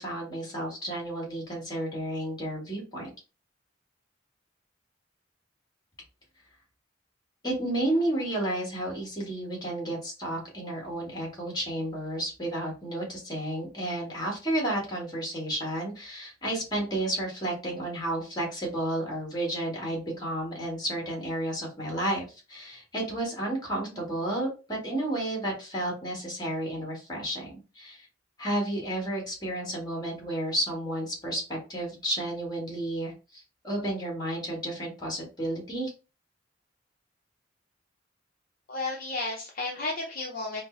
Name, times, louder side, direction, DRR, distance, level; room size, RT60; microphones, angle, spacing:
voice 1, 0.0-3.1 7.4-28.1 28.4-35.9, right 1 dB, 20° left, -1 dB, 1.5 m, -32 dB
voice 2, 38.7-40.6, left 2 dB, 50° left, -1 dB, 0.6 m, -33 dB
5.0 x 2.0 x 2.6 m, 0.32 s
head